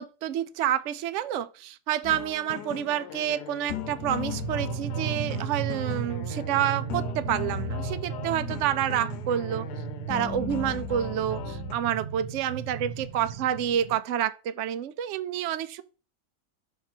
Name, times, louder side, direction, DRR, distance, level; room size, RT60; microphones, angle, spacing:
voice 1, 0.0-9.7 10.1-15.8, right 10 dB, 70° right, 0.7 m, -29 dB
sound 1, 2.0-11.7, left 9 dB, 90° left, 1.3 m, -38 dB
sound 2, 3.8-14.0, right 7 dB, 50° right, 0.9 m, -35 dB
6.6 x 3.8 x 5.9 m
omnidirectional pair, 1.7 m